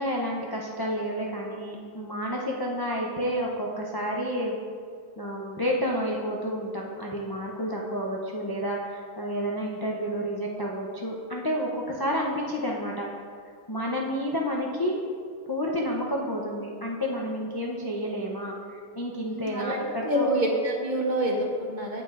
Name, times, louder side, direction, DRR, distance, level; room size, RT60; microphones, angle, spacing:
voice 1, 0.0-4.5 5.2-13.1 13.7-15.0 15.5-20.3, equal, 35° left, -2 dB, 0.3 m, -30 dB
voice 2, 19.2-19.8 20.0-22.0, right 1 dB, 35° right, -1 dB, 0.9 m, -27 dB
15.5 x 5.9 x 2.5 m, 2.2 s
omnidirectional pair, 1.6 m